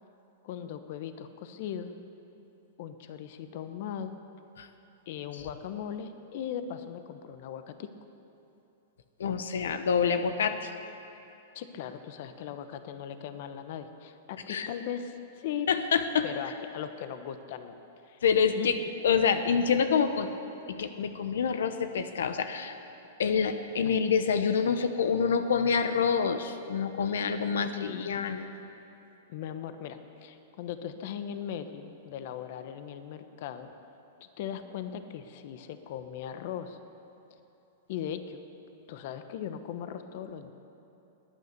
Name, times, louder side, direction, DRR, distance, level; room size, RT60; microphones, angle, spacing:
voice 1, 0.4-1.9 2.8-4.2 5.1-7.9 11.5-15.7 16.2-17.7 18.1-18.9 23.8-23.9 27.0-27.1 27.8-28.1 29.3-33.7 34.4-36.8 37.9-38.4 38.9-40.5, left 9 dB, 55° left, 9 dB, 1.0 m, -38 dB
voice 2, 9.2-10.7 14.5-14.7 15.7-16.3 18.2-18.8 19.0-20.3 20.7-22.7 23.2-28.5, left 6 dB, 85° left, 9 dB, 0.9 m, -27 dB
20.5 x 9.7 x 6.7 m, 2.9 s
hypercardioid pair, 150°, 0 cm